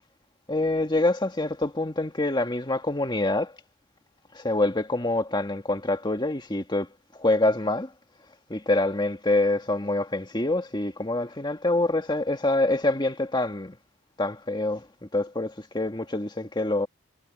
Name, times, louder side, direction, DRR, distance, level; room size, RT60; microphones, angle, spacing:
voice 1, 0.5-3.6 4.3-6.9 7.1-7.9 8.5-13.8 14.2-16.9, left 2 dB, 20° left, 1.8 m, -26 dB
head